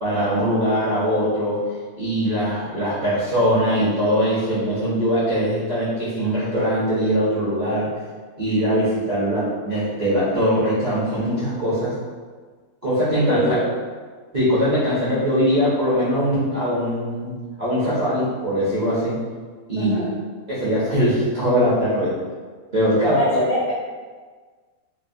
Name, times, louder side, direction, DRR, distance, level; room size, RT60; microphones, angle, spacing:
voice 1, 0.0-1.6 2.0-7.9 8.4-11.9 12.8-13.4 14.3-19.2 19.7-20.0 20.5-22.1 22.7-23.2, equal, 45° right, -11 dB, 0.5 m, -21 dB
voice 2, 13.3-13.7 19.8-20.2 23.1-23.7, left 1 dB, 60° left, -9 dB, 0.4 m, -23 dB
3.1 x 2.1 x 2.5 m, 1.5 s
omnidirectional pair, 1.6 m